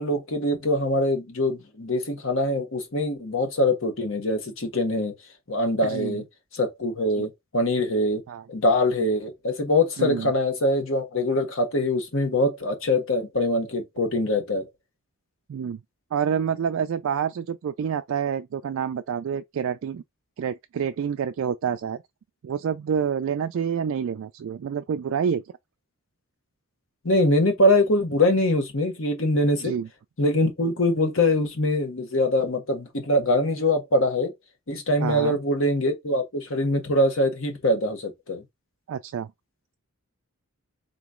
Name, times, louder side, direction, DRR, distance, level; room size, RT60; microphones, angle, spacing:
voice 1, 0.0-5.1 5.5-6.2 6.5-8.2 8.5-14.7 27.0-29.7 30.2-34.3 34.7-38.4, left 1 dB, 60° left, 1.2 m, -23 dB
voice 2, 5.8-6.2 7.2-7.3 8.3-8.4 10.0-10.3 15.5-15.8 16.1-20.0 20.4-22.0 22.4-25.4 29.6-29.9 35.0-35.4 38.9-39.3, right 7 dB, 60° right, 0.3 m, -28 dB
3.9 x 3.0 x 3.6 m
head